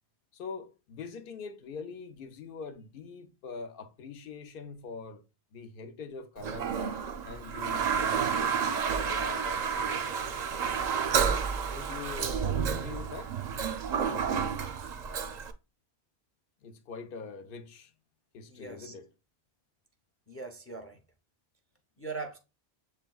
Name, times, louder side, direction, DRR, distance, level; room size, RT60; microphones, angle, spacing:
voice 1, 0.3-5.2 5.5-7.0 7.2-10.4 11.1-13.3 16.6-17.9 18.3-19.1, left 5 dB, 60° left, 0.8 m, -43 dB
Toilet flush, 6.4-15.5, right 6 dB, 55° right, 0.5 m, -30 dB
voice 2, 18.5-18.9 20.3-21.0 22.0-22.4, right 4 dB, 20° left, 0.4 m, -40 dB
7.2 x 3.3 x 2.3 m
omnidirectional pair, 1.1 m